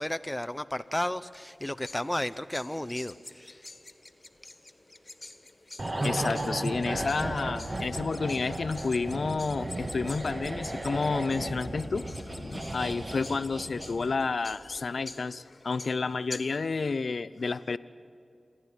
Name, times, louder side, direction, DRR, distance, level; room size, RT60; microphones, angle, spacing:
voice 1, 0.0-3.6, left 1 dB, 15° left, 11 dB, 0.6 m, -33 dB
sound 1, 1.5-16.6, left 2 dB, 35° left, 1.6 m, -47 dB
sound 2, 5.8-14.3 14.6-14.8, right 1 dB, 45° right, 1.7 m, -35 dB
voice 2, 6.0-17.8, left 4 dB, 75° left, 15 dB, 0.5 m, -30 dB
27.5 x 11.0 x 10.0 m, 2.5 s
cardioid pair, 40°, 0 cm